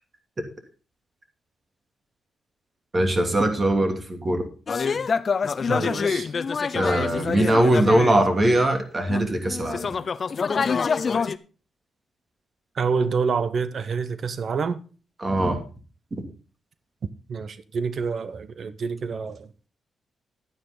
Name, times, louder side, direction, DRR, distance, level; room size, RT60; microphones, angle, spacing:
voice 1, 2.9-4.4 6.7-9.9 15.2-15.6, right 1 dB, 30° right, 2.8 m, -21 dB
sound 1, 4.7-8.6 9.1-11.4, left 5 dB, 45° left, 0.6 m, -26 dB
voice 2, 5.7-6.3 12.7-14.8 17.3-19.5, right 5 dB, 55° right, 0.9 m, -27 dB
11.0 x 9.5 x 3.9 m
cardioid pair, 95°, 0 cm